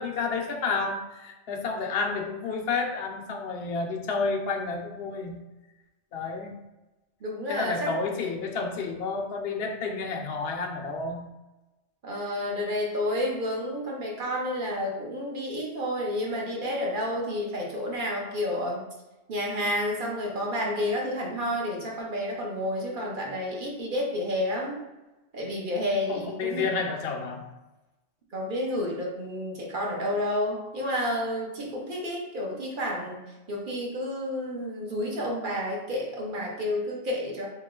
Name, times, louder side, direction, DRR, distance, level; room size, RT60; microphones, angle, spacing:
voice 1, 0.0-5.4 6.1-6.6 7.5-11.3 26.1-27.5, left 4 dB, 65° left, 3 dB, 0.8 m, -30 dB
voice 2, 7.2-7.9 12.0-18.8 19.3-24.8 25.3-26.7 28.3-33.2 33.5-37.5, left 1 dB, 50° right, -2 dB, 0.9 m, -30 dB
2.9 x 2.9 x 3.7 m, 1.0 s
omnidirectional pair, 1.2 m